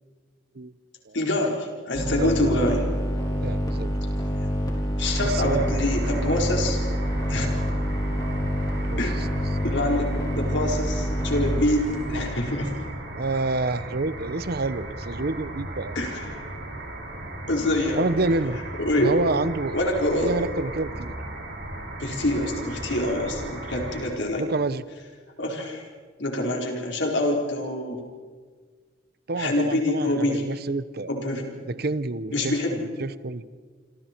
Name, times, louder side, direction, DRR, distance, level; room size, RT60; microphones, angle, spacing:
voice 1, 1.1-2.9 4.4-4.5 5.0-6.8 7.3-7.6 9.0-9.3 9.6-12.9 15.9-16.5 17.5-18.1 18.8-19.1 19.7-20.4 22.0-24.4 25.4-25.8 26.2-28.0 29.4-30.4 31.1-31.6 32.3-32.8, left 1 dB, 70° left, 1 dB, 4.5 m, -26 dB
sound 1, 1.9-12.3, equal, 20° left, 4.2 m, -27 dB
voice 2, 3.4-3.9 5.2-5.8 8.9-9.0 13.1-16.0 18.0-18.6 19.0-19.8 20.2-21.2 24.4-24.8 29.3-31.1 31.7-33.5, right 3 dB, 55° right, 15 dB, 0.8 m, -28 dB
sound 2, 5.0-24.0, right 1 dB, 75° right, 7.0 m, -36 dB
27.0 x 26.0 x 4.6 m, 1.5 s
head